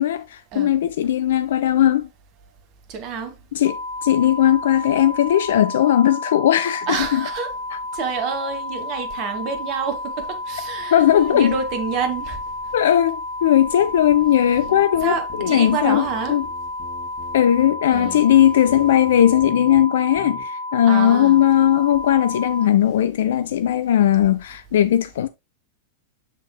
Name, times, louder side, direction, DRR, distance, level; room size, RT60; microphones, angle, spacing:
voice 1, 0.0-2.1 3.5-7.3 7.7-7.8 10.9-11.5 12.7-16.5 17.3-25.3, left 11 dB, 60° left, 0.3 m, -18 dB
voice 2, 2.9-3.3 6.9-7.5 7.9-12.4 15.0-16.4 17.9-18.3 20.9-21.4, right 6 dB, 40° right, 1.5 m, -28 dB
sound 1, 3.6-22.7, left 2 dB, 80° left, 2.4 m, -31 dB
sound 2, 13.8-19.8 20.2-20.4, left 2 dB, 35° left, 3.7 m, -42 dB
7.5 x 6.3 x 2.3 m
figure-of-eight pair, 90°, 0 cm